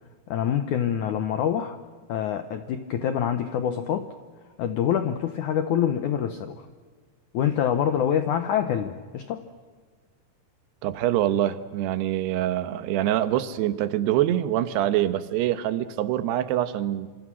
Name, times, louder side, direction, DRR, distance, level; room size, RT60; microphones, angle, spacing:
voice 1, 0.3-1.8 2.1-4.1 4.6-6.7 7.3-9.4, left 9 dB, 75° left, 9 dB, 1.8 m, -26 dB
voice 2, 10.8-17.1, right 12 dB, 80° right, 12 dB, 3.2 m, -25 dB
27.0 x 26.0 x 6.2 m, 1.5 s
omnidirectional pair, 4.8 m